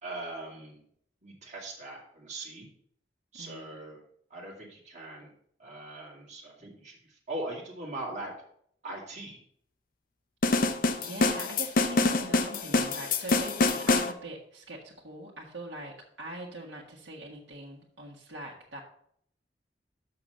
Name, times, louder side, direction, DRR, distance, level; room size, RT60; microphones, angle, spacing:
voice 1, 0.0-0.8 1.2-2.7 3.3-4.0 4.3-5.3 5.6-8.3 8.8-9.4, right 2 dB, 40° right, -3 dB, 2.4 m, -40 dB
voice 2, 3.4-3.8 10.5-18.8, right 1 dB, 75° right, -4 dB, 1.6 m, -42 dB
sound 1, 10.4-14.1, left 3 dB, 50° left, 0.6 m, -26 dB
6.4 x 5.9 x 6.5 m, 0.66 s
head